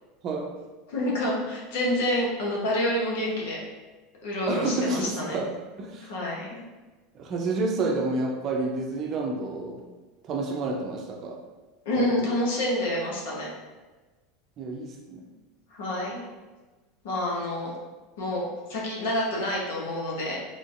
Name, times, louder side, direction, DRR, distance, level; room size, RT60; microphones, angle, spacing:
voice 1, 0.9-3.6 4.2-5.4 6.0-6.6 11.8-13.5 15.7-16.2 17.0-17.7 18.2-20.4, left 1 dB, 75° left, -3 dB, 1.0 m, -28 dB
voice 2, 4.5-5.5 5.8-6.1 7.1-9.8 10.2-11.4 11.9-12.3 14.6-15.2, right 3 dB, 45° right, 2 dB, 0.6 m, -29 dB
3.7 x 2.6 x 2.5 m, 1.3 s
hypercardioid pair, 100°, 0 cm